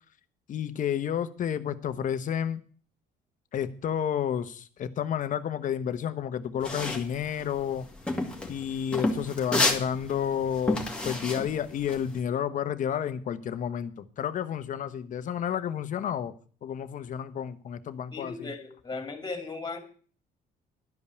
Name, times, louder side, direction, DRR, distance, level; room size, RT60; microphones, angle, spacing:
voice 1, 0.5-2.6 3.5-7.9 8.5-16.3 16.6-18.5, left 9 dB, 50° left, 10 dB, 1.0 m, -31 dB
sound 1, 6.6-12.2, left 2 dB, 5° left, 2.2 m, -30 dB
voice 2, 18.1-19.8, left 3 dB, 25° left, 6 dB, 2.6 m, -37 dB
12.0 x 5.4 x 8.4 m, 0.43 s
cardioid pair, 110°, 17 cm